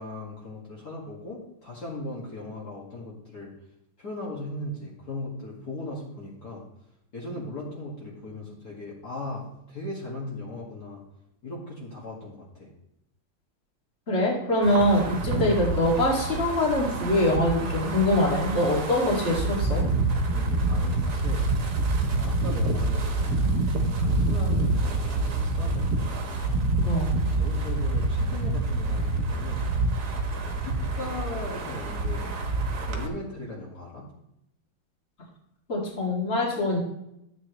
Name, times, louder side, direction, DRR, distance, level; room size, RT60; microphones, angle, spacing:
voice 1, 0.0-3.5 4.0-6.6 7.1-11.0 11.4-12.7 20.2-21.5 22.1-23.4 23.7-26.3 27.3-30.0 30.3-32.4 32.9-34.0, left 2 dB, 50° left, -5 dB, 2.5 m, -38 dB
voice 2, 14.1-19.8 26.8-27.1 35.7-36.8, left 1 dB, 35° left, -3 dB, 2.5 m, -24 dB
Wind, 14.6-33.1, right 2 dB, 55° right, 1.6 m, -27 dB
13.0 x 8.1 x 3.2 m, 0.81 s
omnidirectional pair, 2.2 m